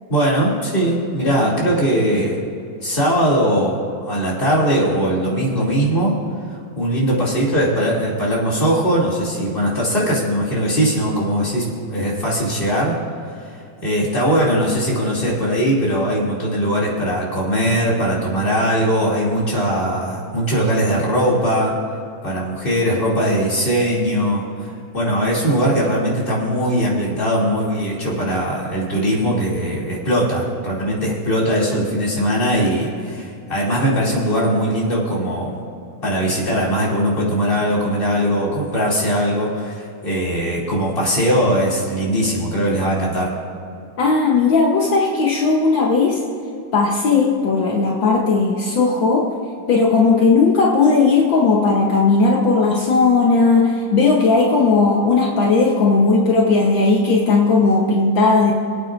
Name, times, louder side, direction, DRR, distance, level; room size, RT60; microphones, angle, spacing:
voice 1, 0.1-2.4 2.8-6.2 6.8-13.0 13.8-21.7 22.2-24.5 24.9-35.6 36.0-43.3, equal, 25° left, -5 dB, 2.9 m, -20 dB
voice 2, 44.0-46.2 46.7-49.3 49.7-58.5, left 4 dB, 70° left, -2 dB, 1.8 m, -16 dB
25.5 x 9.0 x 2.6 m, 2.5 s
omnidirectional pair, 2.2 m